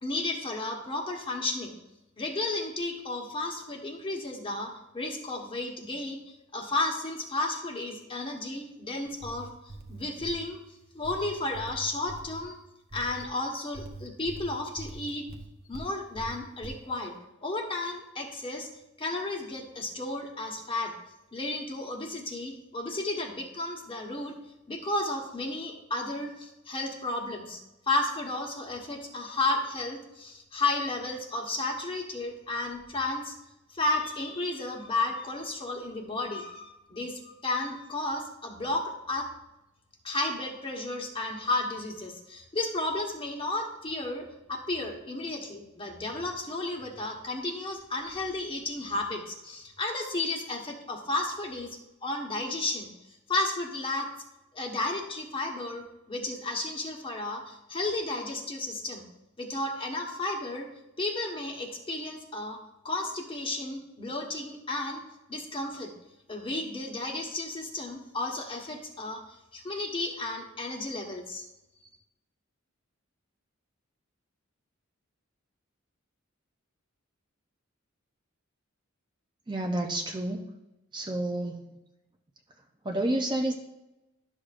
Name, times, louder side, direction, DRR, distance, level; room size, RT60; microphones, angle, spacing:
voice 1, 0.0-1.7 2.2-9.5 9.9-10.6 10.9-12.6 12.9-15.2 15.7-17.1 17.4-18.7 19.0-20.9 21.3-24.3 24.7-27.6 27.9-33.3 33.7-39.3 40.0-51.7 52.0-52.9 53.3-54.1 54.5-59.0 59.4-60.7 61.0-62.6 62.8-65.0 65.3-65.9 66.3-71.4, left 2 dB, 25° left, 1 dB, 1.1 m, -33 dB
sound 1, 9.1-10.5 11.0-12.4 12.9-13.3 13.7-15.9 16.2-16.8, right 2 dB, 45° right, 0.9 m, -43 dB
voice 2, 79.5-80.5 80.9-81.6 82.8-83.5, right 1 dB, 20° right, 3 dB, 0.6 m, -29 dB
11.5 x 6.3 x 2.5 m, 0.93 s
head